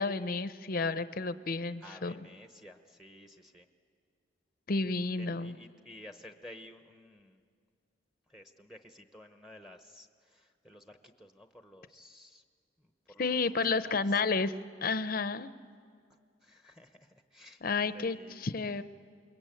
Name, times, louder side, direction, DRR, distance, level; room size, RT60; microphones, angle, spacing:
voice 1, 0.0-2.1 4.7-5.6 13.2-14.5 14.8-15.5 17.6-18.8, left 4 dB, 45° left, 12 dB, 0.7 m, -31 dB
voice 2, 1.8-3.7 5.2-7.4 8.3-12.4 12.8-13.5 13.7-14.2 16.4-18.4, left 1 dB, ahead, 6 dB, 0.9 m, -53 dB
28.0 x 22.5 x 9.0 m, 2.1 s
head